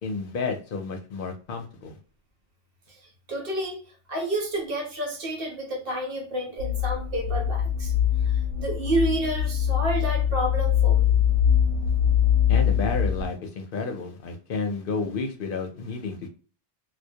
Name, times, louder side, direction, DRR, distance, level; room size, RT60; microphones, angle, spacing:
voice 1, 0.0-2.0 12.5-16.3, left 4 dB, 65° left, 0.7 m, -31 dB
voice 2, 3.3-3.8 4.1-7.9 8.2-8.3 8.6-11.2, right 1 dB, 65° right, 1.0 m, -29 dB
sound 1, 6.6-13.3, left 9 dB, 90° right, 0.9 m, -23 dB
2.2 x 2.1 x 2.7 m
omnidirectional pair, 1.1 m